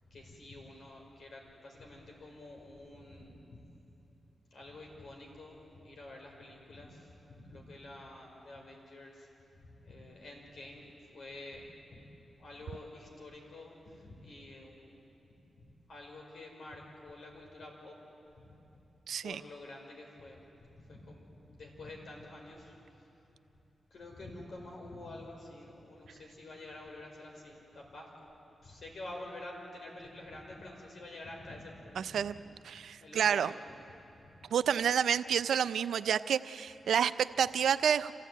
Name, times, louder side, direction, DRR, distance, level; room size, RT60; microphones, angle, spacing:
voice 1, 0.1-3.6 4.5-12.0 12.3-14.9 15.3-18.0 18.4-18.8 19.2-22.8 23.9-28.3 28.6-32.3 33.0-34.3, left 2 dB, 70° left, 0 dB, 5.0 m, -49 dB
voice 2, 19.1-19.4 32.0-32.3 32.7-33.5 34.5-38.1, right 8 dB, 85° right, 13 dB, 0.5 m, -29 dB
27.0 x 15.0 x 9.3 m, 2.9 s
cardioid pair, 60°, 0 cm